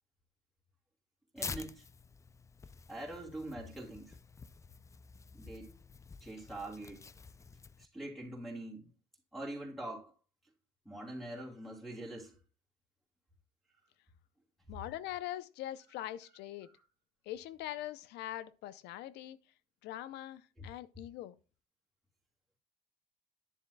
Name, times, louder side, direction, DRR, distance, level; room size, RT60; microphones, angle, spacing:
voice 1, 1.3-1.9 2.9-4.2 5.3-5.7 6.2-7.0 7.8-8.9 9.3-10.1 10.8-12.4 20.6-20.7, right 1 dB, ahead, 2.9 m, -44 dB
Tearing, 1.4-7.9, left 4 dB, 20° left, 0.3 m, -48 dB
voice 2, 14.7-16.7 17.3-19.4 19.8-21.3, left 13 dB, 85° left, 0.6 m, -42 dB
10.0 x 7.2 x 2.2 m
cardioid pair, 110°, 17 cm